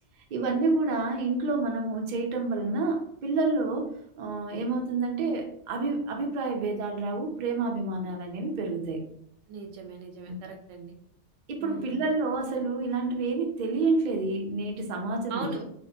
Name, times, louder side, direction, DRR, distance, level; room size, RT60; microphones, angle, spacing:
voice 1, 0.3-9.1 10.3-10.4 11.5-15.5, right 3 dB, 60° right, 2 dB, 0.5 m, -29 dB
voice 2, 9.5-10.9 11.6-12.1 15.3-15.6, right 4 dB, 85° right, 3 dB, 0.9 m, -39 dB
2.6 x 2.1 x 2.6 m, 0.72 s
omnidirectional pair, 1.3 m